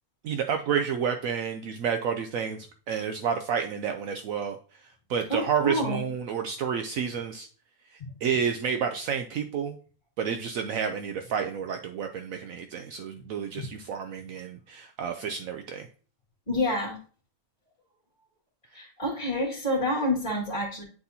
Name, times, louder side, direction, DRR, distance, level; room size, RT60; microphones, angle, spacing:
voice 1, 0.2-2.6 2.9-4.6 5.1-7.5 8.2-9.8 10.2-15.9, right 7 dB, 70° right, 5 dB, 0.9 m, -30 dB
voice 2, 5.3-6.0 13.5-13.7 15.1-15.2 16.5-17.0 18.7-20.8, left 1 dB, 30° left, -7 dB, 2.0 m, -28 dB
9.2 x 4.1 x 2.7 m, 0.40 s
omnidirectional pair, 1.6 m